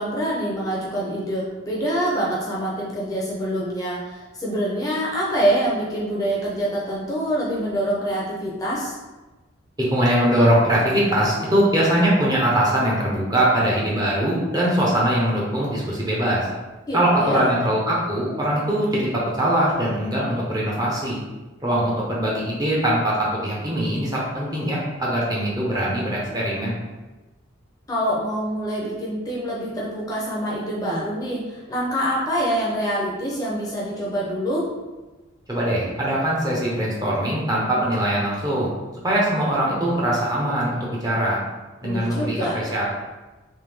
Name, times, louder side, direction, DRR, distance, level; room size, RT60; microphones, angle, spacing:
voice 1, 0.0-8.9 16.9-17.5 27.9-34.7 41.8-42.6, right 1 dB, 15° left, -6 dB, 0.7 m, -25 dB
voice 2, 9.8-16.5 16.9-21.2 21.6-26.7 35.5-38.7 39.0-41.4 41.8-42.9, right 1 dB, 20° right, -5 dB, 0.8 m, -22 dB
3.5 x 3.2 x 3.5 m, 1.2 s
head